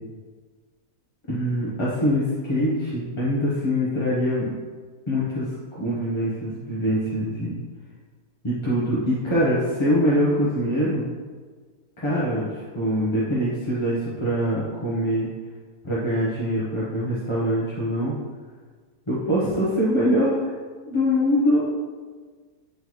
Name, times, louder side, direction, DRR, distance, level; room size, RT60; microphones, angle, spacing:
voice 1, 1.3-4.5 5.1-5.5 5.8-7.6 8.4-11.0 12.0-15.3 15.8-18.1 19.1-20.5 20.9-21.6, equal, 25° left, -8 dB, 0.8 m, -23 dB
9.2 x 3.8 x 3.1 m, 1.5 s
omnidirectional pair, 1.7 m